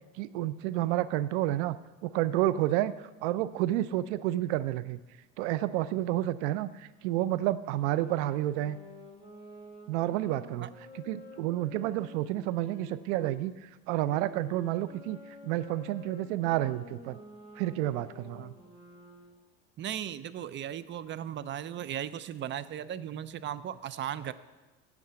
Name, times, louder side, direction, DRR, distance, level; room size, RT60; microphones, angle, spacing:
voice 1, 0.2-1.8 2.0-5.0 5.4-8.8 9.9-10.7 10.9-15.2 15.4-17.2 17.6-18.5, right 14 dB, 90° right, 16 dB, 0.6 m, -30 dB
sound 1, 7.7-13.4 14.1-19.4, left 1 dB, 15° right, 3.8 m, -50 dB
voice 2, 19.8-24.3, right 10 dB, 35° right, 15 dB, 0.5 m, -37 dB
8.4 x 7.7 x 7.5 m, 1.2 s
supercardioid pair, 110°, 33 cm